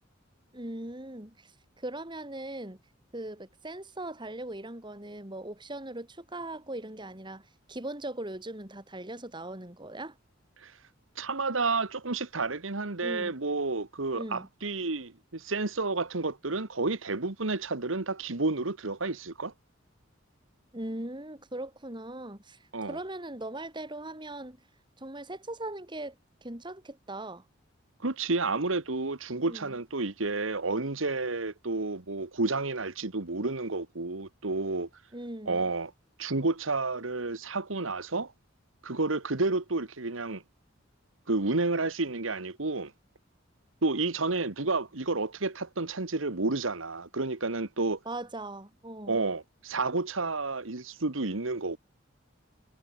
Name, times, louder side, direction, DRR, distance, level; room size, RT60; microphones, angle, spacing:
voice 1, 0.5-1.5 1.8-2.8 3.1-10.2 13.0-13.3 14.1-14.5 20.7-22.6 22.9-24.6 25.0-26.2 26.4-27.4 29.4-29.7 35.1-35.7 48.1-49.2, right 1 dB, 25° right, 3.5 m, -39 dB
voice 2, 11.2-19.5 22.7-23.0 28.0-34.9 35.5-35.9 36.2-38.3 38.8-40.4 41.3-42.9 43.8-48.0 49.1-51.8, right 3 dB, 85° right, 1.6 m, -30 dB
head